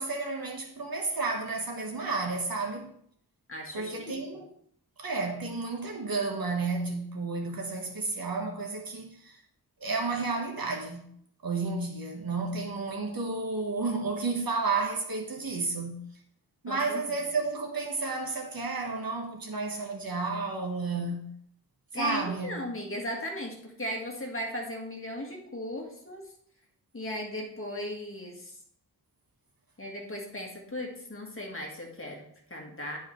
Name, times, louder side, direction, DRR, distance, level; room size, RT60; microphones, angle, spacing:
voice 1, 0.0-2.9 3.7-4.5 5.0-9.4 9.8-11.1 11.4-16.0 16.6-21.3 21.9-22.6, right 3 dB, 60° right, 1.3 m, -32 dB
voice 2, 3.5-4.2 16.7-17.1 21.9-26.3 26.9-28.5 29.8-33.0, equal, 35° left, 1.7 m, -37 dB
11.0 x 4.8 x 3.2 m
wide cardioid pair, 100°, 39 cm